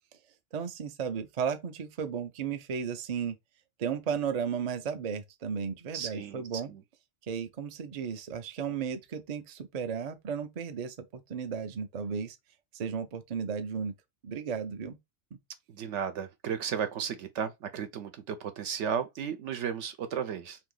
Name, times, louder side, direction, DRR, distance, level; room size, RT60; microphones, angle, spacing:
voice 1, 0.5-3.4 3.8-6.7 7.3-12.4 12.7-13.9 14.2-15.0 15.3-15.4, right 7 dB, 50° right, 0.5 m, -34 dB
voice 2, 5.9-6.8 15.7-20.6, right 7 dB, 80° right, 0.9 m, -34 dB
2.8 x 2.7 x 3.7 m
omnidirectional pair, 1.2 m